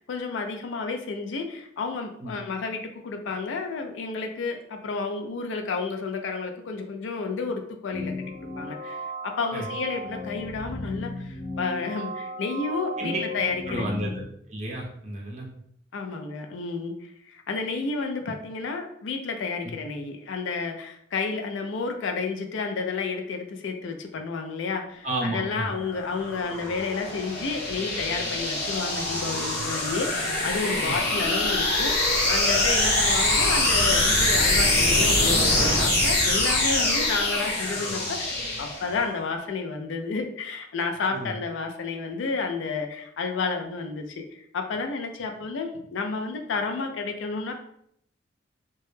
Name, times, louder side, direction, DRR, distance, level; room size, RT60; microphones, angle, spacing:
voice 1, 0.0-8.1 8.4-9.1 9.4-13.9 15.9-47.5, left 4 dB, 80° left, 4 dB, 0.4 m, -31 dB
sound 1, 7.9-14.2, left 1 dB, 15° left, 0.4 m, -35 dB
voice 2, 13.7-15.5 19.6-19.7 25.0-25.7 30.8-31.0 41.1-41.3, right 1 dB, 35° right, -1 dB, 0.5 m, -32 dB
sound 2, 25.7-39.1, left 2 dB, 60° left, 0.8 m, -24 dB
2.2 x 2.0 x 3.1 m, 0.70 s
head